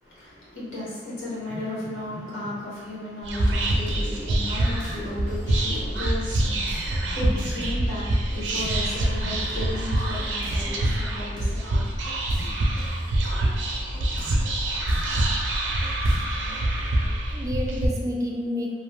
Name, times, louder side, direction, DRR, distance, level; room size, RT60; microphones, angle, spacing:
voice 1, 0.0-12.0 12.4-12.5, left 1 dB, 90° left, -8 dB, 1.0 m, -35 dB
Whispering, 3.2-17.9, right 1 dB, 90° right, 0.4 m, -26 dB
sound 1, 3.4-17.4, equal, 25° left, 0.8 m, -36 dB
voice 2, 7.0-7.3 12.4-12.5 17.3-18.7, left 1 dB, 20° right, -2 dB, 0.4 m, -30 dB
2.7 x 2.0 x 3.0 m, 1.4 s
head